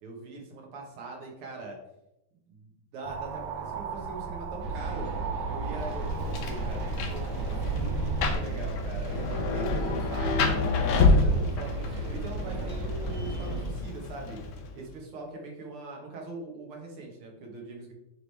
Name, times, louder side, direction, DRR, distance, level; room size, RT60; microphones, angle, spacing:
voice 1, 0.0-1.8 2.5-5.1 5.4-9.1 9.5-10.6 10.9-14.4 14.8-17.9, right 3 dB, 85° right, 0 dB, 2.2 m, -42 dB
sound 1, 3.0-8.4, right 5 dB, 70° right, 1.1 m, -35 dB
sound 2, 4.6-13.7, right 2 dB, 50° right, 1.4 m, -35 dB
Rain, 5.8-14.9, left 3 dB, 75° left, 1.6 m, -29 dB
9.7 x 3.2 x 3.3 m, 0.88 s
omnidirectional pair, 2.3 m